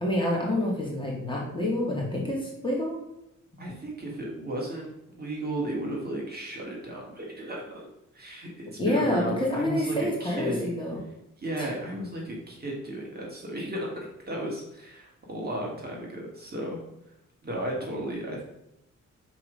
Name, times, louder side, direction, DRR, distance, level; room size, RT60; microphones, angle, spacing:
voice 1, 0.0-3.0 3.6-3.7 8.8-11.0 11.6-11.7, left 1 dB, 15° left, -3 dB, 2.1 m, -27 dB
voice 2, 3.6-7.9 8.1-10.7 11.4-16.8 17.4-18.4, right 1 dB, 30° right, -2 dB, 2.0 m, -34 dB
6.0 x 4.8 x 5.1 m, 0.85 s
wide cardioid pair, 135°, 30 cm